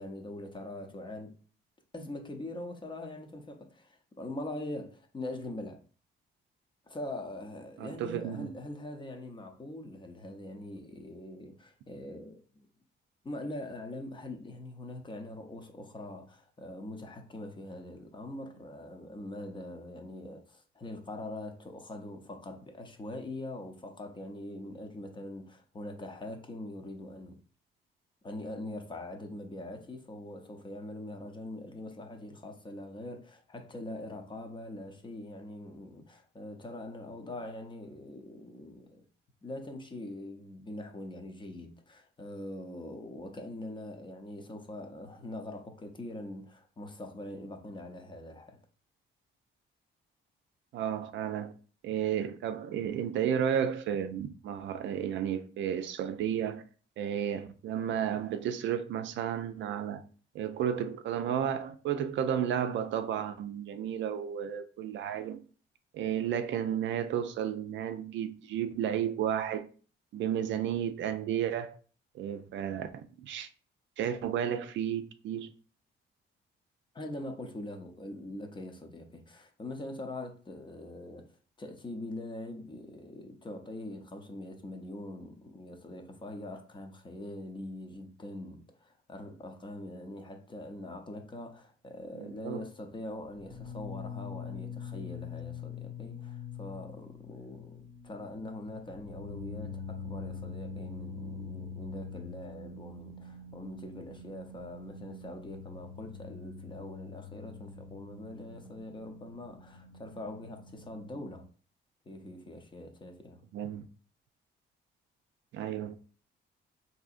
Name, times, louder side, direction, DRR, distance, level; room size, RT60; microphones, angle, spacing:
voice 1, 0.0-1.4 1.9-5.8 6.9-12.7 13.2-27.4 28.2-39.0 39.4-48.6 76.9-111.5 112.1-113.4, left 1 dB, 25° left, 0.6 m, -43 dB
voice 2, 7.8-8.5 50.7-51.5 51.8-56.6 57.0-60.0 60.3-65.4 65.9-69.7 70.1-71.8 72.1-73.5 74.0-75.5 92.2-92.7 113.5-113.9 115.5-115.9, right 9 dB, 70° right, 0.4 m, -32 dB
sound 1, 93.3-111.4, left 5 dB, 85° left, 1.4 m, -44 dB
3.6 x 2.7 x 2.5 m
cardioid pair, 90°, 20 cm